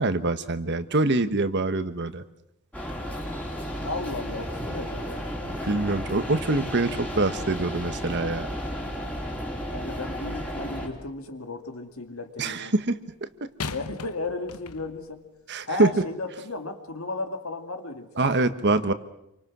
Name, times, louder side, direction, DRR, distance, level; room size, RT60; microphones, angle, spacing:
voice 1, 0.0-2.2 5.4-8.5 12.4-13.3 15.5-16.0 18.2-18.9, right 2 dB, 50° right, 11 dB, 1.3 m, -25 dB
sound 1, 2.7-10.9, equal, 5° left, 3.4 m, -33 dB
voice 2, 3.8-5.2 9.7-12.7 13.7-15.2 15.7-18.1, left 3 dB, 65° left, 6 dB, 2.4 m, -34 dB
sound 2, 10.8-11.2 13.6-15.1 15.9-16.0, left 4 dB, 85° left, 1.2 m, -39 dB
28.0 x 24.5 x 6.2 m, 0.83 s
head